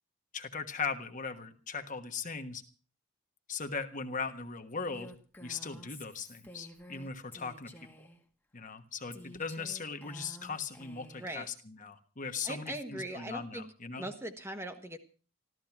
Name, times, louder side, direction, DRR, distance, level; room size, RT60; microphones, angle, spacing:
voice 1, 0.3-2.6 3.5-5.1 5.4-7.7 8.5-14.0, left 5 dB, 35° left, 7 dB, 1.3 m, -39 dB
Female speech woman speaking, 4.9-8.2 9.1-11.3, left 1 dB, 10° left, 1.4 m, -51 dB
voice 2, 11.2-11.5 12.4-13.7 14.0-15.0, right 1 dB, 10° right, 7 dB, 1.2 m, -40 dB
14.0 x 14.0 x 5.9 m, 0.38 s
head